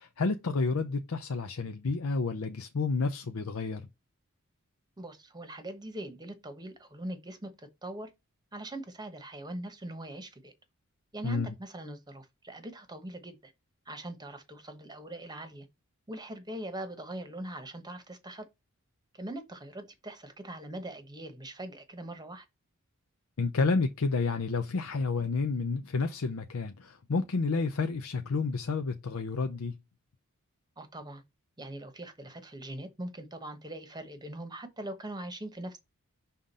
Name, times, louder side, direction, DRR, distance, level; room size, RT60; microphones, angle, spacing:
voice 1, 0.0-3.8 11.2-11.5 23.4-29.8, left 4 dB, 70° left, 0.6 m, -30 dB
voice 2, 5.0-8.1 8.5-10.5 11.1-13.5 13.9-15.7 16.1-18.4 19.1-22.5 30.8-31.2 31.6-35.8, right 1 dB, 20° right, 1.0 m, -42 dB
5.7 x 3.7 x 5.3 m
head